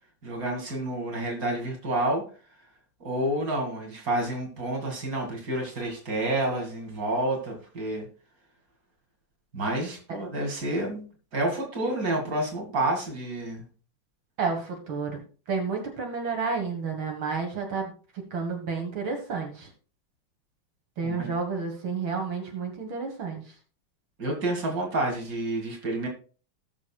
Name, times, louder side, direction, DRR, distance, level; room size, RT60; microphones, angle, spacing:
voice 1, 0.2-2.3 3.0-8.1 9.5-11.0 11.3-13.6 21.0-21.3 24.2-26.1, right 1 dB, 45° right, 2 dB, 2.7 m, -29 dB
voice 2, 14.4-15.2 15.5-17.9 18.3-19.7 21.0-23.4, right 5 dB, 80° right, 2 dB, 2.4 m, -30 dB
18.5 x 6.4 x 2.3 m, 0.38 s
omnidirectional pair, 2.2 m